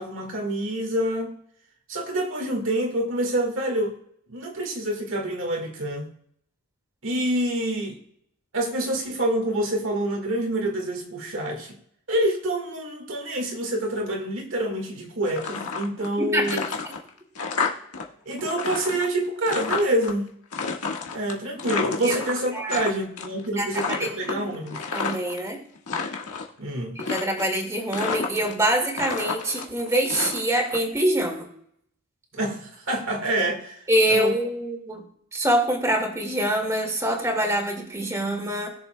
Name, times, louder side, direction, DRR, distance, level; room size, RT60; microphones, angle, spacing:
voice 1, 0.0-1.4 1.9-4.0 4.3-6.1 7.0-8.0 8.5-11.8 12.1-16.6 18.2-20.3 21.1-24.8 26.6-27.0 32.3-34.3, right 1 dB, 60° right, 2 dB, 1.7 m, -27 dB
sound 1, 15.2-16.1 16.4-18.0 18.3-20.1 20.5-22.9 23.2-23.5 23.7-25.4 25.8-26.5 27.0-27.6 27.9-28.7 28.9-30.8, left 5 dB, 90° left, 1.5 m, -30 dB
voice 2, 16.2-16.6 22.0-22.2 22.5-22.8 23.6-24.5 24.9-25.6 27.0-31.5 33.9-35.0 35.3-38.7, right 1 dB, 15° right, 1 dB, 1.9 m, -25 dB
20.5 x 6.9 x 2.2 m, 0.68 s
head